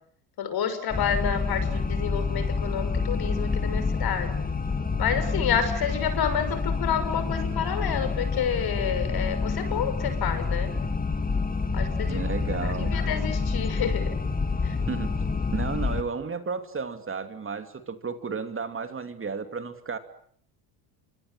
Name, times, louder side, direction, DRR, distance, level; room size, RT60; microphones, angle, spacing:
voice 1, 0.4-4.3 5.0-10.7 11.7-12.2 12.6-14.1 14.6-14.7, left 7 dB, 50° left, 11 dB, 6.2 m, -29 dB
sound 1, 0.9-16.0, left 4 dB, 20° left, 2.4 m, -28 dB
voice 2, 12.1-12.9 14.9-15.1 15.5-20.0, right 5 dB, 25° right, 9 dB, 2.8 m, -33 dB
26.0 x 25.5 x 7.8 m, 0.62 s
supercardioid pair, 90°, 47 cm